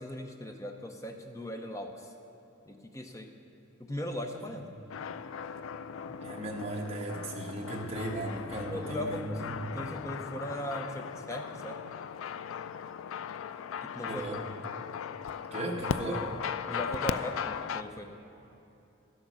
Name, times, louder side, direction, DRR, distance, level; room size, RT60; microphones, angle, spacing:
voice 1, 0.0-2.1 2.7-3.3 3.8-4.7 8.7-11.8 13.8-14.4 16.7-18.1, equal, 15° left, 5 dB, 0.5 m, -39 dB
sound 1, 4.9-17.8, left 7 dB, 85° left, 0.3 m, -38 dB
voice 2, 6.0-9.9 14.0-14.4 15.5-16.4, right 1 dB, 30° right, -1 dB, 1.1 m, -37 dB
12.0 x 7.9 x 6.2 m, 2.8 s
head